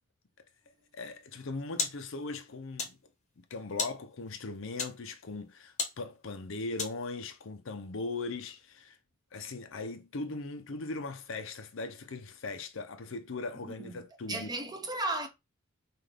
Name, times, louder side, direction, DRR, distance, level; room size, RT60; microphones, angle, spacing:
voice 1, 0.9-3.0 3.4-9.0 9.3-14.5, left 3 dB, 70° left, 0.7 m, -39 dB
sound 1, 1.2-7.3, left 4 dB, 35° left, 0.9 m, -40 dB
voice 2, 13.6-14.0 14.3-15.3, right 2 dB, 20° right, 0.8 m, -35 dB
5.7 x 2.6 x 3.4 m
head